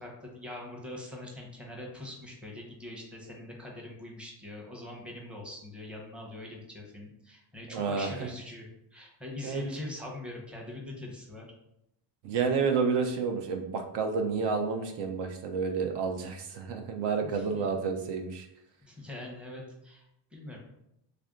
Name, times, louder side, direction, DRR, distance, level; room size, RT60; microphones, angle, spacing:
voice 1, 0.0-11.5 17.2-17.6 18.9-20.6, left 1 dB, ahead, -1 dB, 0.7 m, -43 dB
voice 2, 7.7-8.1 9.4-9.6 12.2-18.5, right 5 dB, 65° right, 5 dB, 0.6 m, -30 dB
3.3 x 2.6 x 3.6 m, 0.82 s
cardioid pair, 125°, 45 cm